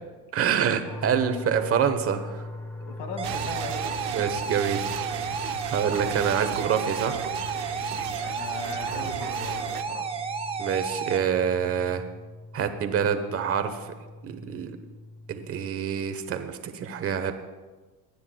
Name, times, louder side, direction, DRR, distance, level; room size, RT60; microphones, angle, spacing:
voice 1, 0.3-2.5 4.1-4.9 5.6-7.2 10.6-12.0 12.5-13.9 14.2-14.8 15.3-17.3, right 8 dB, 30° right, 8 dB, 1.1 m, -26 dB
sound 1, 0.9-15.7, left 2 dB, 5° left, 0.9 m, -41 dB
voice 2, 2.8-3.9 8.1-10.1, left 4 dB, 60° left, 5 dB, 2.3 m, -39 dB
sound 2, 3.2-11.2, right 5 dB, 15° right, 0.4 m, -32 dB
sound 3, 3.2-9.8, right 14 dB, 75° right, 0.8 m, -37 dB
23.5 x 9.7 x 2.3 m, 1.3 s
supercardioid pair, 120°, 49 cm